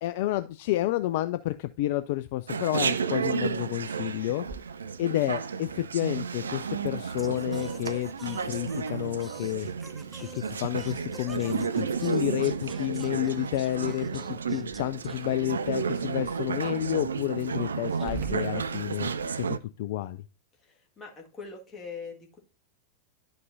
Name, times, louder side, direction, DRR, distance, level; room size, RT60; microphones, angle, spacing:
voice 1, 0.0-4.4 5.0-9.7 10.2-19.5 19.8-20.2, left 15 dB, 50° left, 12 dB, 0.3 m, -30 dB
Chatter, 2.5-19.6, right 6 dB, 70° right, 0.3 m, -32 dB
Singing, 7.2-15.9, right 2 dB, 10° right, 0.6 m, -49 dB
Growling, 17.7-19.2, right 3 dB, 30° right, 1.7 m, -50 dB
voice 2, 20.6-22.4, left 5 dB, 20° left, 0 dB, 1.8 m, -42 dB
11.0 x 5.3 x 2.6 m, 0.32 s
figure-of-eight pair, 90°, 0 cm